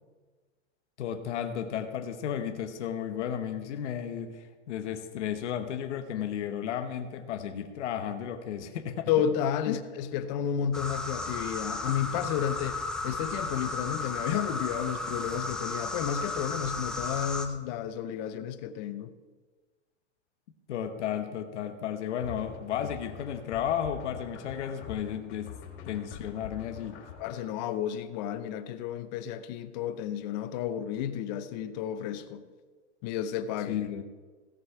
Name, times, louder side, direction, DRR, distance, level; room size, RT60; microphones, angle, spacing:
voice 1, 1.0-9.1 9.7-9.8 20.7-25.6 25.8-27.0 33.7-34.0, left 9 dB, 80° left, 1.2 m, -33 dB
voice 2, 9.1-19.2 27.2-32.4 33.0-33.8, left 9 dB, 40° left, 0.7 m, -32 dB
sound 1, 10.7-17.5, left 2 dB, ahead, 0.5 m, -34 dB
sound 2, 22.2-27.4, left 7 dB, 65° left, 3.1 m, -44 dB
17.0 x 6.6 x 4.7 m
supercardioid pair, 150°, 35 cm